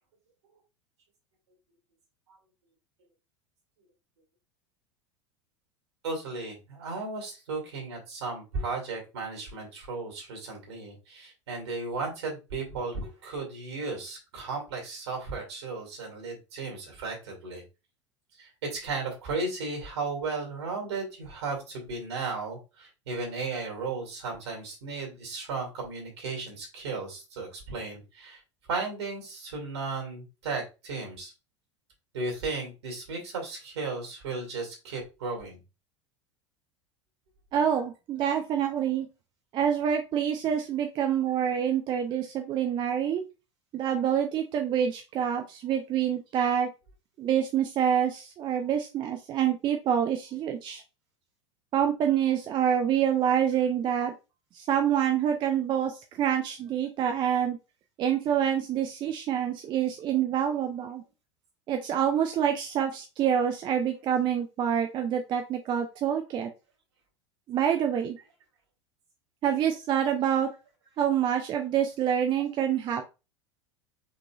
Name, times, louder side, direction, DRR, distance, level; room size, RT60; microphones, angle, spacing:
voice 1, 6.0-17.6 18.3-28.4 28.7-31.3 32.1-35.6, right 3 dB, 60° right, 1 dB, 2.4 m, -35 dB
voice 2, 37.5-39.1 39.5-43.2 43.7-46.7 47.2-50.8 51.7-54.1 54.5-57.6 58.0-61.0 61.7-66.5 67.5-68.2 69.4-70.5 71.0-73.1, right 9 dB, 30° right, 5 dB, 0.6 m, -26 dB
5.3 x 3.8 x 2.4 m, 0.28 s
figure-of-eight pair, 80°, 16 cm